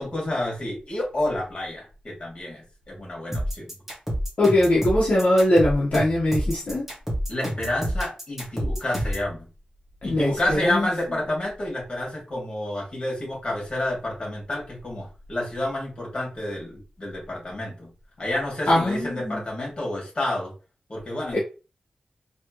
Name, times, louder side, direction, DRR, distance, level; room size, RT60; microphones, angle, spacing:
voice 1, 0.0-3.7 7.3-9.5 10.0-17.9 18.2-20.5 20.9-21.4, left 1 dB, 35° left, 2.6 m, -29 dB
sound 1, 3.3-9.3, equal, 10° right, 2.0 m, -28 dB
voice 2, 4.4-6.9 10.0-11.2 18.7-19.4 21.3-21.4, left 1 dB, 60° left, 1.4 m, -21 dB
4.3 x 3.3 x 3.1 m
wide cardioid pair, 120°, 3 cm